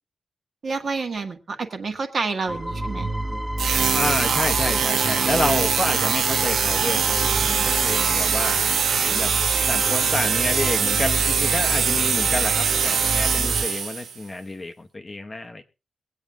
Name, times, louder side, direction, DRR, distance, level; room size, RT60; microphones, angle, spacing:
voice 1, 0.6-3.1, right 4 dB, 40° right, 5 dB, 1.5 m, -28 dB
sound 1, 2.5-13.7, right 1 dB, 10° right, 1.0 m, -30 dB
sound 2, 3.6-14.1, right 6 dB, 90° right, 1.0 m, -22 dB
voice 2, 3.9-7.2 7.4-8.6 9.1-9.3 9.7-15.6, left 2 dB, 20° left, 5 dB, 0.9 m, -29 dB
23.0 x 8.7 x 3.5 m, 0.29 s
wide cardioid pair, 175°, 0 cm